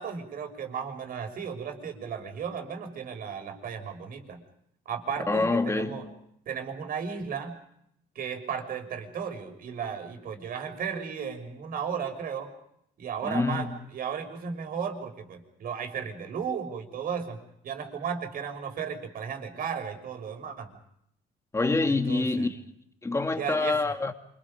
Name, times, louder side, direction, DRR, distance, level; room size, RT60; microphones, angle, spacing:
voice 1, 0.0-4.4 4.9-6.0 6.5-7.6 8.1-12.5 13.0-20.8 21.9-22.5 23.3-23.8, right 7 dB, 60° right, 6.0 m, -35 dB
voice 2, 5.3-6.1 13.2-13.7 21.5-22.6 23.0-24.1, left 3 dB, 15° left, 2.6 m, -26 dB
28.0 x 27.5 x 5.3 m
cardioid pair, 110°, 17 cm